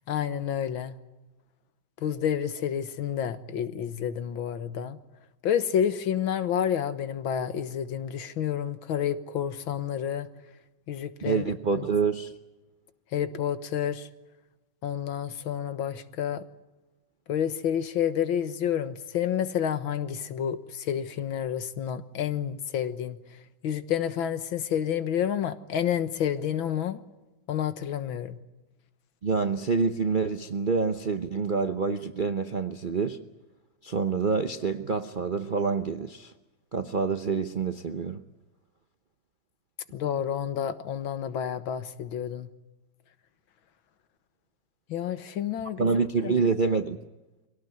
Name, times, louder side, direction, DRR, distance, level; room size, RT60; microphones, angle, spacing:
voice 1, 0.1-1.0 2.0-5.0 5.4-10.3 10.9-11.4 11.8-11.9 13.1-14.1 14.8-16.5 17.3-23.2 23.6-27.0 27.5-28.4 39.9-42.5 44.9-45.9 46.2-46.4, left 9 dB, 85° left, 2.0 m, -29 dB
voice 2, 11.2-12.3 29.2-33.2 33.8-36.3 36.7-38.2 45.8-47.0, right 5 dB, 45° right, 0.7 m, -27 dB
23.5 x 17.5 x 9.4 m
omnidirectional pair, 2.1 m